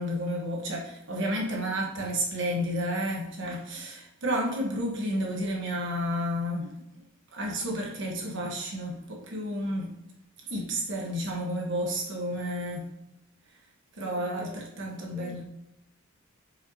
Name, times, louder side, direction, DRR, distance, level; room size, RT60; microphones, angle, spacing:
voice 1, 0.0-6.7 7.3-9.9 10.5-12.9 14.0-15.4, equal, 60° right, 1.2 m, -31 dB
voice 2, 14.0-14.6 15.0-15.4, equal, 5° right, 0.4 m, -48 dB
7.7 x 5.3 x 2.8 m
head